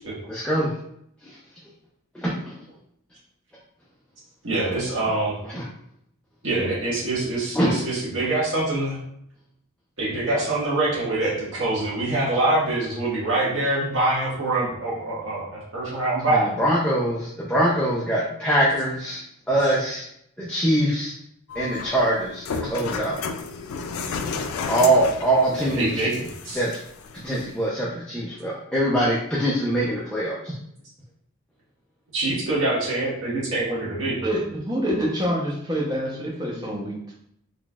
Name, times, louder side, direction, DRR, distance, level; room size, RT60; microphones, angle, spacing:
voice 1, 0.3-0.7 2.2-2.5 5.5-5.6 7.5-7.7 16.3-20.1 20.4-21.1 21.5-23.2 24.7-26.0 26.5-26.8 27.1-30.5, right 1 dB, 5° left, -7 dB, 0.5 m, -23 dB
voice 2, 4.4-5.3 6.4-9.0 10.0-16.5 25.5-26.6 32.1-34.2, right 2 dB, 65° right, -8 dB, 1.4 m, -25 dB
sound 1, 21.5-27.5, left 5 dB, 90° left, 0.4 m, -33 dB
voice 3, 34.2-37.1, equal, 20° right, -3 dB, 0.8 m, -26 dB
3.9 x 3.2 x 2.4 m, 0.72 s
head